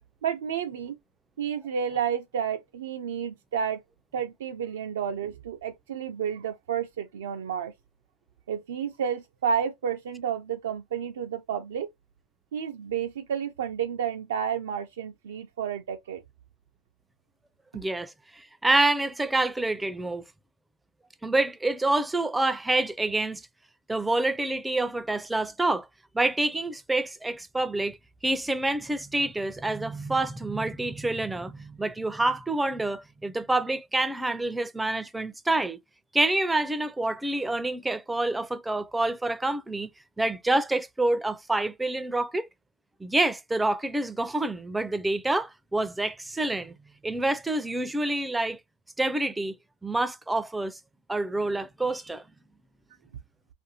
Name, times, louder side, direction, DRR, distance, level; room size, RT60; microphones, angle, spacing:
voice 1, 0.2-1.0 1.4-3.8 4.1-7.7 8.5-11.9 12.5-16.2, right 8 dB, 80° right, 0.4 m, -31 dB
voice 2, 17.7-20.2 21.2-23.4 23.9-25.9 26.1-28.0 28.2-35.8 36.1-39.9 40.2-42.5 43.0-46.7 47.0-48.6 49.0-49.6 49.8-50.8 51.1-52.2, right 2 dB, 10° right, 0.3 m, -27 dB
2.6 x 2.5 x 2.7 m
hypercardioid pair, 105°, 0 cm